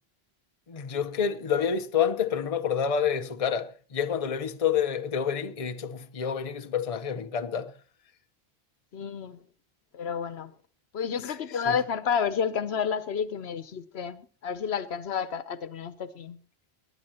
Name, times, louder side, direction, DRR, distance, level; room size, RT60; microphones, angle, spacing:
voice 1, 0.7-7.8 11.2-11.8, left 7 dB, 35° left, 0.8 m, -28 dB
voice 2, 8.9-9.4 9.9-10.5 10.9-16.4, left 7 dB, 80° left, 1.1 m, -30 dB
20.5 x 9.1 x 4.3 m
omnidirectional pair, 1.1 m